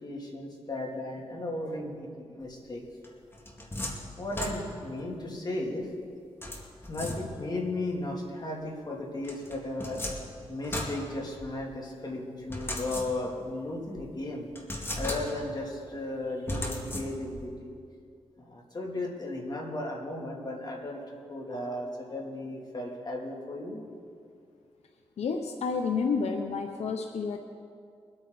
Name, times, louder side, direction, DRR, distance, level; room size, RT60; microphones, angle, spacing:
voice 1, 0.0-2.8 4.2-5.9 6.9-10.0 10.5-14.5 15.0-17.7 18.4-21.0 21.3-23.8, left 2 dB, 40° left, -2 dB, 2.8 m, -35 dB
sound 1, 3.0-5.0 6.4-7.6 9.2-11.8 12.5-13.5 14.0-14.1 14.6-15.6 16.5-17.5, left 1 dB, 20° left, 2.1 m, -37 dB
voice 2, 25.2-27.4, left 5 dB, 85° left, 4 dB, 0.8 m, -30 dB
22.5 x 9.0 x 4.1 m, 2.3 s
cardioid pair, 75°, 11 cm